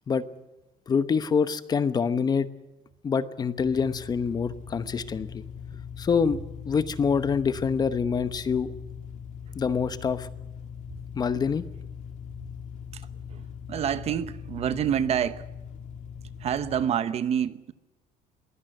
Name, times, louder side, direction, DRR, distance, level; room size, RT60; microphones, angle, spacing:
voice 1, 0.9-2.5 3.0-5.4 6.0-6.4 6.6-8.7 9.6-10.3 11.1-11.6, left 6 dB, 25° left, 0.9 m, -25 dB
sound 1, 3.6-16.8, left 7 dB, 50° left, 2.3 m, -41 dB
voice 2, 13.7-15.4 16.4-17.7, right 9 dB, 40° right, 0.9 m, -27 dB
22.5 x 16.5 x 7.8 m
cardioid pair, 155°, 16 cm